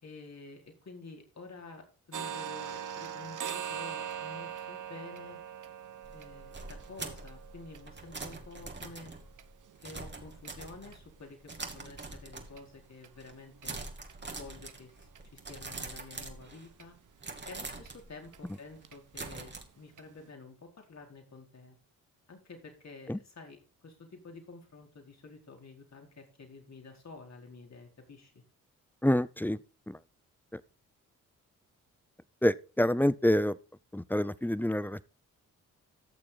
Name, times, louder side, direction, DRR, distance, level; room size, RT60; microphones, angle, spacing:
voice 1, 0.0-5.4 6.1-9.1 9.8-13.8 14.3-17.0 17.4-21.8 22.3-28.3, left 3 dB, 50° left, 4.3 m, -50 dB
sound 1, 2.1-9.9 10.4-10.5 10.9-11.1 11.5-11.6 12.0-12.1 12.6-12.7 13.0-13.1 13.6-13.7 14.1-14.2 14.7-14.8 15.2-15.3 15.7-15.8 16.2-16.3 16.8-16.9 17.3-17.4 17.9-18.0 18.3-18.4 18.8-19.0 19.4-19.5 20.0-20.1, right 8 dB, 60° right, 1.2 m, -42 dB
sound 2, 6.0-11.1 11.5-12.8 13.1-13.4 13.6-16.9 17.2-19.6, right 3 dB, 30° right, 2.5 m, -44 dB
voice 2, 29.0-29.6 29.9-30.0 32.4-33.5 33.9-35.1, left 1 dB, 5° left, 0.6 m, -27 dB
14.5 x 6.6 x 4.1 m
supercardioid pair, 50°, 35 cm